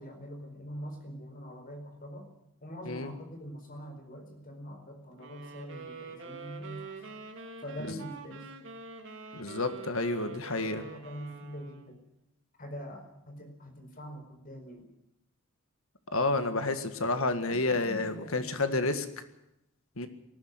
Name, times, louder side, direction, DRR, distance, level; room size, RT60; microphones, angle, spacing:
voice 1, 0.0-2.3 2.6-7.0 7.6-8.5 10.5-12.0 12.6-14.9 16.5-16.9 17.4-19.0, equal, 40° left, 5 dB, 4.7 m, -44 dB
sound 1, 5.2-12.0, right 4 dB, 60° right, 3.5 m, -45 dB
voice 2, 9.3-10.8 16.1-19.0 20.0-20.1, left 2 dB, 65° left, 9 dB, 1.8 m, -30 dB
19.0 x 14.5 x 9.6 m, 0.85 s
head